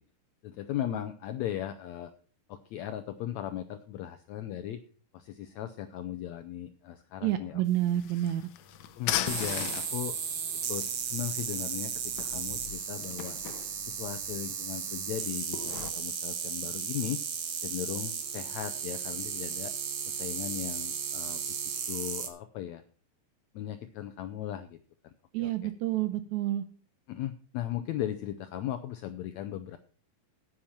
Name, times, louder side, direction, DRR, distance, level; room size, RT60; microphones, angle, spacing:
voice 1, 0.4-2.1 2.5-4.8 5.1-7.6 8.9-10.2 10.7-13.4 13.8-17.2 17.6-19.7 20.1-21.6 21.9-22.8 23.5-24.8 25.0-25.1 25.4-25.7 27.1-29.8, left 11 dB, 90° left, 10 dB, 1.6 m, -37 dB
voice 2, 7.2-8.4 25.3-26.6, right 13 dB, 75° right, 11 dB, 1.7 m, -29 dB
sound 1, 7.7-15.9, left 11 dB, 70° left, 2.1 m, -39 dB
sound 2, 9.3-22.3, right 7 dB, 55° right, 2.0 m, -35 dB
9.6 x 8.9 x 5.8 m, 0.41 s
omnidirectional pair, 4.0 m